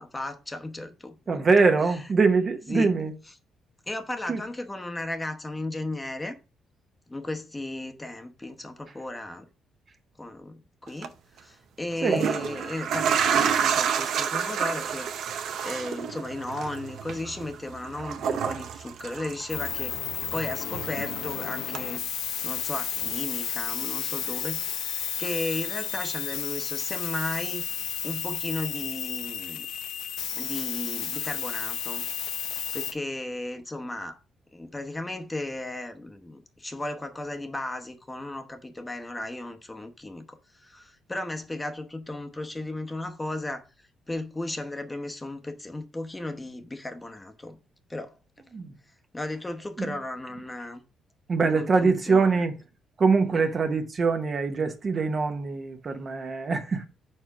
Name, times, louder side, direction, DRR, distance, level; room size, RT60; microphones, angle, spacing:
voice 1, 0.0-1.5 1.8-2.0 2.7-2.9 3.9-6.4 7.1-9.5 10.2-11.1 11.4-15.1 15.6-19.9 20.3-22.0 22.4-27.6 28.0-29.7 30.3-32.0 32.7-34.2 34.5-43.7 44.1-47.6 47.9-48.1 49.1-50.8 51.5-52.3 53.3-53.5, left 2 dB, 15° left, 0.9 m, -35 dB
voice 2, 1.3-3.1 4.3-4.4 12.0-12.2 48.5-48.7 49.8-49.9 51.3-52.6 53.0-56.9, right 4 dB, 40° right, 0.9 m, -23 dB
sound 1, 10.9-11.1 11.9-19.9 20.2-21.3 21.7-21.8, right 7 dB, 75° right, 0.6 m, -29 dB
sound 2, 19.5-32.9, left 9 dB, 85° left, 0.6 m, -32 dB
4.5 x 4.4 x 5.9 m
cardioid pair, 90°, 0 cm